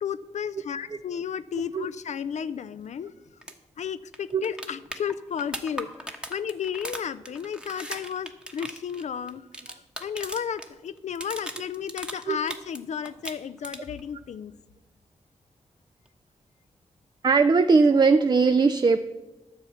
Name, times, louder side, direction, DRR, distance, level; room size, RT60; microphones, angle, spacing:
voice 1, 0.0-3.1 3.8-9.5 10.0-14.5, left 7 dB, 70° left, 13 dB, 0.4 m, -33 dB
sound 1, 3.4-3.5 3.8-3.9 4.1-10.7 11.0-12.8 13.0-14.0 16.1-16.2, equal, 5° right, 1.0 m, -38 dB
voice 2, 17.2-19.0, right 4 dB, 35° right, 10 dB, 0.4 m, -19 dB
10.5 x 6.9 x 5.7 m, 1.1 s
cardioid pair, 60°, 13 cm